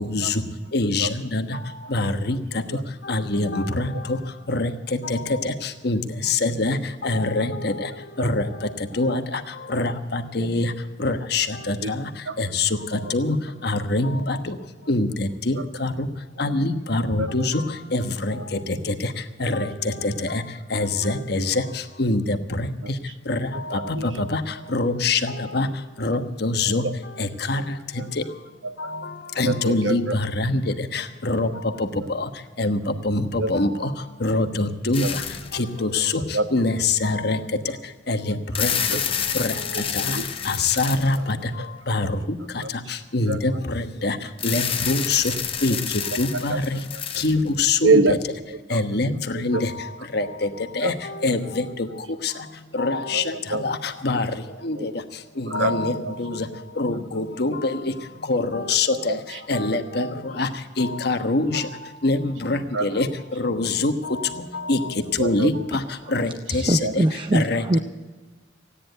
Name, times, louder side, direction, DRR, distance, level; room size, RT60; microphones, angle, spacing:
voice 1, 0.7-1.4 1.9-2.4 3.1-3.8 4.1-4.2 4.5-4.7 5.1-5.2 5.4-5.5 5.8-6.0 6.4-6.8 7.0-7.7 8.2-8.4 9.0-9.2 9.7-10.7 11.0-11.7 12.4-12.7 13.1-13.4 13.6-14.4 14.9-15.9 16.4-17.5 17.9-18.0 19.4-19.7 20.0-20.4 20.7-21.5 22.0-22.2 23.3-23.4 23.7-23.8 24.7-25.7 26.0-26.8 27.5-27.6 29.4-30.0 30.4-30.6 30.9-31.5 32.6-32.8 33.0-33.2 33.5-33.7 34.2-35.0 35.8-36.0 36.5-37.4 38.1-38.2 38.6-38.7 40.8-41.2 41.9-42.1 43.1-43.5 44.0-44.1 44.4-45.2 45.6-45.7 46.2-46.5 47.2-48.0 48.7-49.1 49.4-49.6 50.1-50.2 50.8-50.9 51.2-51.4 52.8-53.2 53.6-53.8 54.0-54.2 54.6-54.7 55.5-55.9 56.2-56.3 56.8-57.5 58.3-59.1 59.5-60.0 60.4-60.5 60.8-61.6 62.0-62.2 62.5-63.1 63.4-63.9 64.7-64.8 65.2-65.5 66.1-66.3 66.7-66.8 67.3-67.6, left 2 dB, 55° left, 7 dB, 1.2 m, -23 dB
voice 2, 22.8-23.1 23.7-24.1 26.8-26.9 28.0-28.1 28.6-29.1 29.4-30.1 32.0-32.1 33.4-33.5 35.0-35.1 35.8-35.9 36.3-36.5 38.9-39.0 39.7-40.3 41.2-41.3 42.6-42.9 43.3-43.4 46.3-46.6 46.9-47.0 47.8-48.2 48.5-48.8 49.3-49.6 50.8-50.9 53.1-53.6 54.8-54.9 55.5-55.7 56.0-56.1 58.9-59.4 62.7-62.9 65.2-65.5 66.8-66.9, right 3 dB, 85° right, 9 dB, 1.1 m, -26 dB
sound 1, 34.9-35.7 36.4-36.5 38.3-41.5 44.4-47.8, left 8 dB, 30° left, 0.9 m, -29 dB
voice 3, 66.5-67.8, right 1 dB, 25° right, 7 dB, 0.5 m, -22 dB
16.5 x 10.0 x 8.0 m, 1.3 s
head